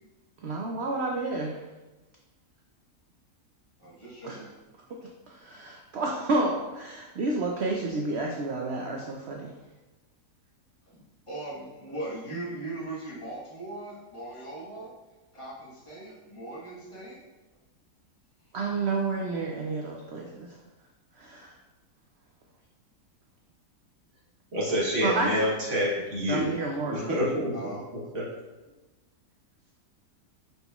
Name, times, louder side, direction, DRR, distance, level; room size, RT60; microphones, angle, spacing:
voice 1, 0.4-1.6 4.2-4.4 5.3-9.5 18.5-20.5 21.2-21.5 25.0-25.5 26.3-27.2, right 3 dB, 90° right, 0 dB, 0.5 m, -30 dB
voice 2, 3.8-4.5 10.9-14.9 15.3-17.2 27.5-27.8, right 2 dB, 20° left, -6 dB, 1.1 m, -39 dB
voice 3, 24.5-26.5 26.8-27.5 28.1-28.2, equal, 50° right, -6 dB, 1.3 m, -27 dB
5.3 x 4.2 x 2.3 m, 1.1 s
omnidirectional pair, 1.7 m